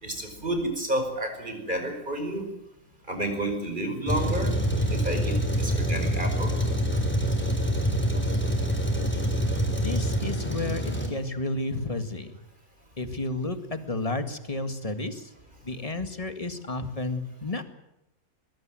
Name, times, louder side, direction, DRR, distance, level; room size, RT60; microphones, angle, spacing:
voice 1, 0.0-2.5 3.1-4.5 4.9-6.5, right 1 dB, 35° right, 5 dB, 5.3 m, -30 dB
Truck, 4.1-11.1, equal, 5° left, 3.6 m, -26 dB
voice 2, 9.8-12.3 13.0-15.3 15.6-17.6, left 2 dB, 25° left, 8 dB, 2.0 m, -32 dB
22.5 x 22.0 x 7.7 m, 0.89 s
omnidirectional pair, 1.5 m